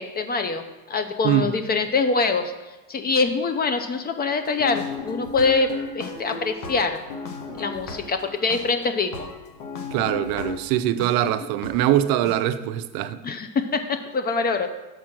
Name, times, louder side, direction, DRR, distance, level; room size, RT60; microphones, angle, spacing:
voice 1, 0.0-2.5 2.9-7.0 7.6-9.3 13.2-14.7, left 4 dB, 25° left, 0.5 m, -24 dB
sound 1, 4.4-11.1 11.6-11.7 12.3-12.4, left 4 dB, 80° left, 1.2 m, -35 dB
voice 2, 9.9-13.2, right 12 dB, 60° right, 0.5 m, -22 dB
6.2 x 4.7 x 5.9 m
supercardioid pair, 100°, 41 cm